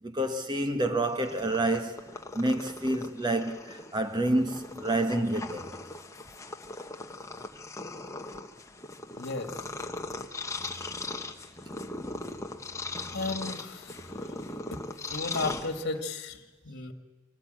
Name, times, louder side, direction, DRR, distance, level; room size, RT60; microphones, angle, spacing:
voice 1, 0.0-2.1 2.3-5.7, right 1 dB, 20° right, 1.5 m, -28 dB
Purr, 1.0-16.2, left 2 dB, 15° left, 1.1 m, -39 dB
voice 2, 9.2-9.7 13.1-14.3 14.6-14.8 15.0-16.9, left 3 dB, 50° left, 2.1 m, -35 dB
25.5 x 17.5 x 9.2 m
head